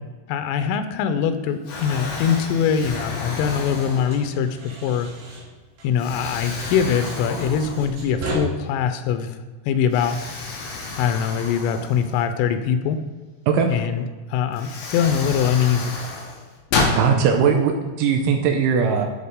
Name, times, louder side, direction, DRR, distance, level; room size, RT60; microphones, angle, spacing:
voice 1, 0.3-5.1 5.8-9.3 9.7-10.2 11.0-13.0 13.7-14.0 14.3-15.9, left 8 dB, 90° left, 9 dB, 3.2 m, -22 dB
Explosion, 1.0-1.3 1.7-4.5 5.1-5.3 6.0-8.2 8.6-8.7 9.9-12.6 14.0-14.1 14.5-17.0, left 3 dB, 65° left, 2.6 m, -30 dB
sound 1, 3.1-6.2 6.5-8.4, right 2 dB, 65° right, 3.9 m, -37 dB
voice 2, 16.9-19.1, right 6 dB, 85° right, 3 dB, 3.0 m, -19 dB
13.0 x 4.4 x 3.6 m, 1.4 s
omnidirectional pair, 5.7 m